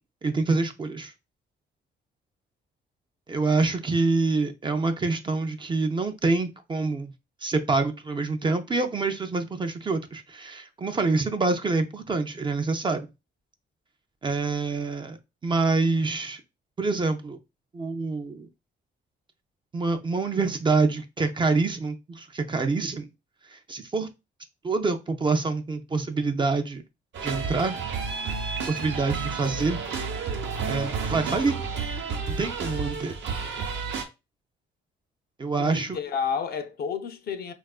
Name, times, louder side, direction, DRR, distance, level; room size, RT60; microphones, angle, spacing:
voice 1, 0.2-1.1 3.3-7.1 7.4-13.1 14.2-15.2 15.4-16.4 16.8-17.4 17.7-18.5 19.7-23.1 23.5-24.1 24.6-26.8 27.2-27.8 28.7-29.8 30.7-31.6 32.3-33.2 35.4-36.0, right 3 dB, 25° right, 0.4 m, -26 dB
sound 1, 27.1-34.0, right 5 dB, 65° right, 0.7 m, -31 dB
voice 2, 35.6-37.5, left 6 dB, 50° left, 0.4 m, -30 dB
3.5 x 2.3 x 2.3 m
cardioid pair, 90°, 20 cm